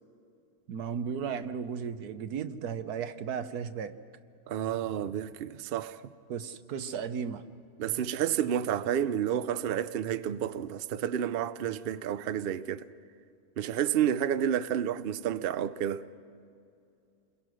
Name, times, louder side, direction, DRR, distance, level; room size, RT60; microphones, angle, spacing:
voice 1, 0.7-4.0 6.3-7.4, right 7 dB, 90° right, 1.4 m, -35 dB
voice 2, 4.5-6.0 7.8-12.9 13.6-16.0, right 10 dB, 55° right, 0.6 m, -30 dB
28.0 x 22.0 x 6.3 m
omnidirectional pair, 1.6 m